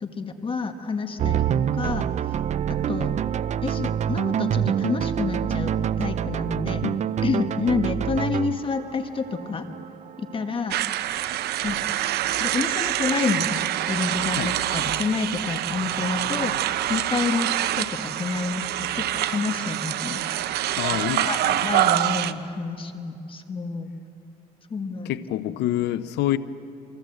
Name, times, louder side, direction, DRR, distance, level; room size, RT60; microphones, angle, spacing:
voice 1, 0.0-2.4 2.9-3.1 3.6-6.8 7.2-9.6 10.2-10.8 11.6-11.8 12.4-16.5 16.9-20.6 21.2-23.9 24.7-25.1 25.5-25.6, left 4 dB, 30° left, 7 dB, 1.4 m, -29 dB
sound 1, 1.2-13.8, right 9 dB, 45° right, 0.5 m, -27 dB
sound 2, 10.7-22.3, right 13 dB, 70° right, 0.9 m, -26 dB
voice 2, 20.8-21.7 25.0-26.4, left 13 dB, 80° left, 12 dB, 0.8 m, -27 dB
27.5 x 25.5 x 7.9 m, 2.8 s
cardioid pair, 110°, 17 cm